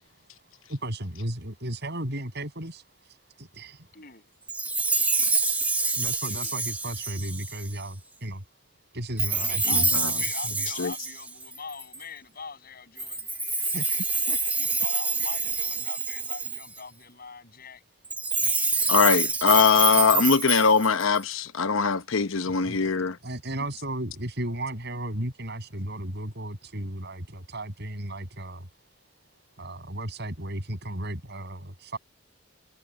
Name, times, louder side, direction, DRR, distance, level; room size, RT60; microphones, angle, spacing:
voice 1, 0.7-3.9 6.0-8.4 8.9-10.6 13.7-14.5 22.5-22.8 23.2-28.7 29.6-32.0, right 1 dB, 55° right, 8.0 m, -35 dB
voice 2, 3.9-4.3 6.3-6.5 9.4-13.3 14.6-17.8, left 5 dB, 45° left, 7.8 m, -42 dB
Chime, 4.5-7.8 9.2-12.0 13.0-16.8 18.0-21.2, right 3 dB, 10° right, 1.7 m, -27 dB
voice 3, 9.7-10.1 10.8-10.9 18.9-23.2, left 5 dB, 75° left, 0.9 m, -22 dB
head